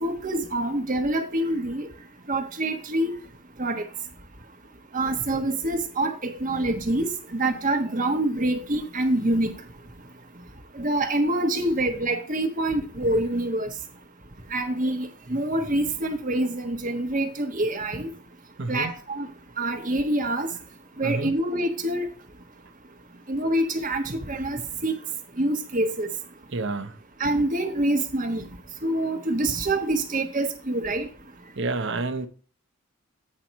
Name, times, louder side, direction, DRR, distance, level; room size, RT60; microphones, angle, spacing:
voice 1, 0.0-1.9 2.3-3.1 3.6-3.9 4.9-9.5 10.7-13.7 14.5-18.1 18.7-19.3 19.6-20.5 21.0-22.1 23.3-25.0 25.4-26.1 27.2-28.4 28.8-31.1, right 1 dB, 40° right, 6 dB, 1.3 m, -26 dB
voice 2, 18.6-18.9 21.0-21.3 26.5-27.0 31.6-32.3, right 3 dB, 60° right, 11 dB, 0.8 m, -29 dB
8.8 x 4.4 x 5.3 m, 0.40 s
head